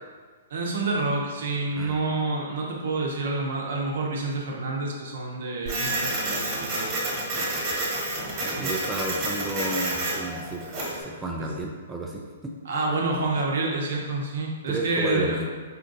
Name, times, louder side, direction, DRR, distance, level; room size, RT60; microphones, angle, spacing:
voice 1, 0.5-7.1 8.6-8.7 11.4-11.5 12.6-15.4, right 3 dB, 65° right, -1 dB, 0.7 m, -28 dB
Printer, 5.7-11.0, right 2 dB, 30° right, 1.1 m, -29 dB
voice 2, 8.4-12.5 14.7-15.5, right 1 dB, 10° right, -1 dB, 0.3 m, -32 dB
4.3 x 2.4 x 2.6 m, 1.5 s
hypercardioid pair, 125°, 0 cm